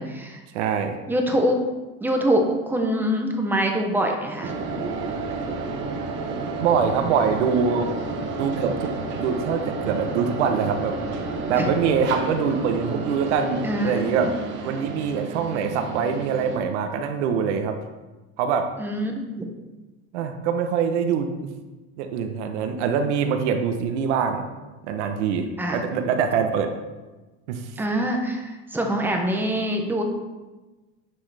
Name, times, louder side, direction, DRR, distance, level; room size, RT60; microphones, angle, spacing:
voice 1, 0.0-0.4 1.1-1.6 2.0-4.6 11.5-11.7 13.6-14.1 18.8-19.4 25.6-25.8 27.8-30.0, equal, 5° right, 2 dB, 0.5 m, -24 dB
voice 2, 0.5-1.0 6.6-7.9 8.4-10.9 11.5-14.3 14.6-17.8 18.4-18.7 20.1-21.5 22.0-24.4 24.8-26.7 27.5-27.7, right 6 dB, 75° right, 6 dB, 0.9 m, -24 dB
sound 1, 4.4-16.6, right 3 dB, 35° right, 1.0 m, -31 dB
9.8 x 6.2 x 3.4 m, 1.2 s
supercardioid pair, 170°, 35 cm